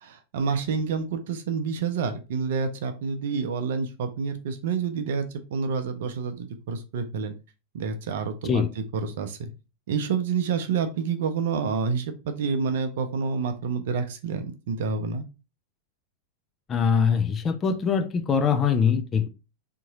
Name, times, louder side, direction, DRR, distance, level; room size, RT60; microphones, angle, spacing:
voice 1, 0.0-7.3 7.7-9.5 9.9-15.3, right 5 dB, 55° right, 0.7 m, -28 dB
voice 2, 16.7-19.3, left 6 dB, 25° left, 0.5 m, -23 dB
3.7 x 3.0 x 3.9 m
figure-of-eight pair, 90°, 0 cm